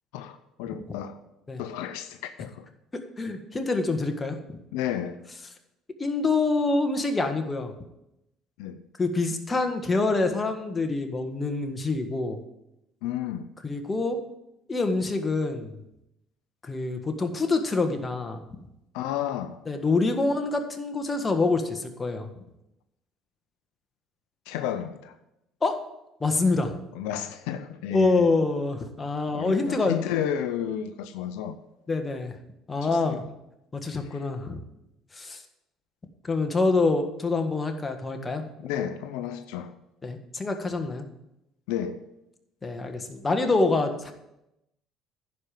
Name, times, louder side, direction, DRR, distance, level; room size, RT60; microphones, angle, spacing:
voice 1, 0.1-1.2 1.6-2.7 4.7-5.2 8.6-8.8 13.0-13.5 18.9-19.6 24.5-25.1 26.9-28.3 29.3-31.6 32.8-33.3 33.9-34.2 38.6-39.7 41.7-42.1, left 10 dB, 85° left, 0.6 m, -32 dB
voice 2, 3.2-4.4 6.0-7.7 9.0-12.4 13.6-14.2 14.7-15.8 16.6-18.4 19.7-22.3 25.6-25.8 26.2-26.7 27.9-29.9 31.9-32.3 32.7-33.2 33.7-34.6 35.1-35.4 36.2-38.4 40.0-41.0 42.6-44.1, left 3 dB, 25° left, 1.6 m, -26 dB
11.0 x 5.1 x 7.6 m
supercardioid pair, 80°, 0 cm